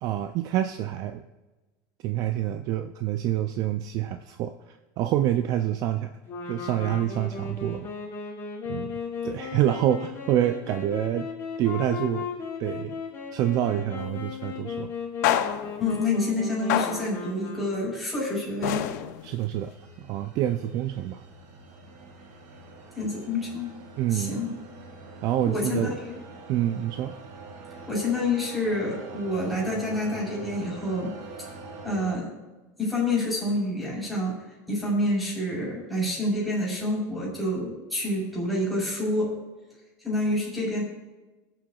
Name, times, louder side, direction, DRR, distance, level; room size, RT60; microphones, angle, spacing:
voice 1, 0.0-1.2 2.0-6.1 6.5-7.9 8.7-9.0 9.2-11.3 11.6-12.3 12.6-13.0 13.3-14.9 19.2-21.2 24.0-24.4 25.2-25.9 26.5-27.2, right 12 dB, 40° right, 8 dB, 0.4 m, -27 dB
sound 1, 6.3-18.1, left 5 dB, 25° left, 2.9 m, -36 dB
sound 2, 14.0-14.2 15.2-15.9 16.7-17.2 18.6-19.4, left 11 dB, 75° left, 0.6 m, -27 dB
voice 2, 15.8-18.8 22.9-23.7 24.1-24.6 25.4-26.2 27.9-31.1 31.4-31.5 31.8-32.3 32.8-34.3 34.7-39.3 40.0-40.8, left 1 dB, ahead, -5 dB, 3.8 m, -28 dB
sound 3, 18.4-32.1, right 4 dB, 65° right, 2.1 m, -45 dB
23.0 x 7.7 x 2.3 m, 1.2 s
supercardioid pair, 165°, 9 cm